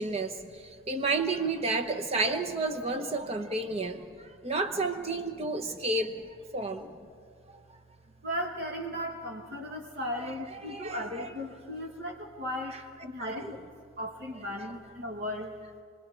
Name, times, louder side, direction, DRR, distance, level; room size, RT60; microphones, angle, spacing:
voice 1, 0.0-6.1 6.5-6.9 10.2-10.3 10.6-11.3 13.2-13.5, right 3 dB, 30° right, 5 dB, 1.0 m, -31 dB
voice 2, 8.2-13.7 14.0-15.6, equal, 50° right, 0 dB, 1.5 m, -37 dB
28.0 x 21.0 x 4.6 m, 2.3 s
head